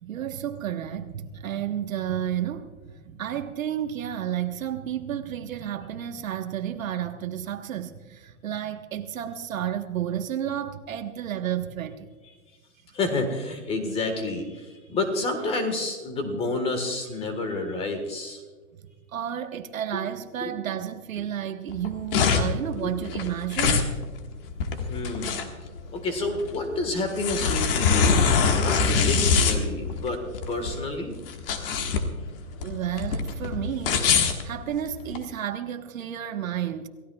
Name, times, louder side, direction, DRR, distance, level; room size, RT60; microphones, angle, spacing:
voice 1, 0.0-12.1 19.1-23.9 32.6-34.0 34.4-36.9, right 10 dB, 65° right, 1.4 m, -31 dB
voice 2, 12.9-18.4 20.4-20.6 21.2-21.3 22.8-23.0 24.9-25.4 25.9-31.1, left 2 dB, 15° left, 1.4 m, -29 dB
sound 1, 21.7-35.2, left 5 dB, 40° left, 1.6 m, -24 dB
28.0 x 16.0 x 2.3 m
hypercardioid pair, 155°, 43 cm